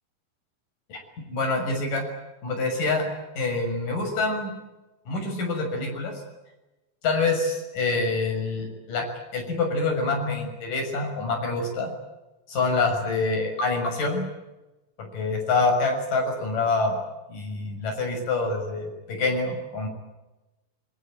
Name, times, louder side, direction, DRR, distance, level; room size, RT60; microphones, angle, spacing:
voice 1, 1.3-2.0 2.4-3.1 3.4-4.5 5.1-6.1 7.0-11.9 12.5-14.2 15.1-16.9 17.3-19.9, left 3 dB, 75° left, 4 dB, 8.1 m, -26 dB
26.0 x 24.0 x 8.9 m, 1.0 s
omnidirectional pair, 3.8 m